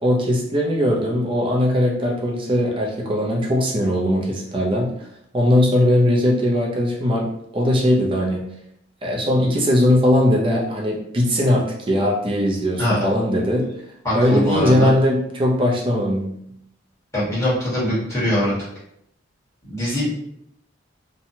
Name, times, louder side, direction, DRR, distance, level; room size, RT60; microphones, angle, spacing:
voice 1, 0.0-4.9 5.3-8.4 9.0-13.7 14.1-16.3, left 1 dB, 25° right, -1 dB, 0.5 m, -19 dB
voice 2, 14.0-14.9 17.1-18.5 19.7-20.1, equal, 15° left, -10 dB, 1.3 m, -22 dB
2.9 x 2.2 x 2.6 m, 0.75 s
head